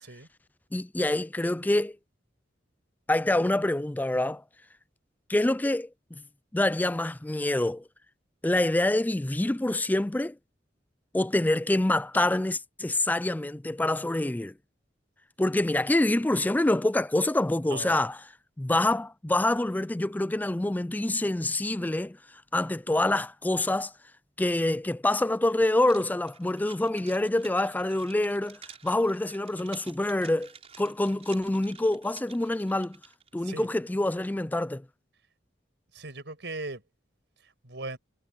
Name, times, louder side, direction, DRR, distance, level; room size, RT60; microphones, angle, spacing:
voice 1, 0.7-2.0 3.1-4.4 5.3-6.2 6.5-7.8 8.4-10.4 11.1-14.5 15.4-18.3 18.6-22.2 22.5-23.9 24.4-30.5 30.8-33.0 33.3-34.8, left 1 dB, 10° left, 0.4 m, -26 dB
sound 1, 25.8-33.3, right 7 dB, 35° right, 5.6 m, -52 dB
voice 2, 35.9-36.8 37.6-38.0, right 2 dB, 70° right, 5.7 m, -38 dB
head